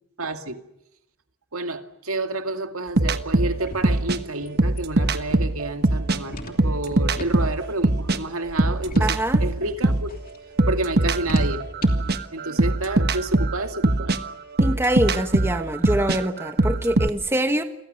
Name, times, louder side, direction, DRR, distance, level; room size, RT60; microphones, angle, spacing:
voice 1, 0.2-0.6 1.5-10.2 10.7-11.7 12.3-14.1, right 2 dB, 75° right, 2.3 m, -30 dB
sound 1, 3.0-6.2 6.5-10.1 10.6-17.1, right 2 dB, 45° right, 1.3 m, -22 dB
sound 2, 3.3-12.2, left 1 dB, 40° left, 3.0 m, -41 dB
voice 2, 9.0-9.4 14.6-17.6, right 1 dB, 10° right, 1.3 m, -24 dB
29.5 x 23.0 x 6.6 m
head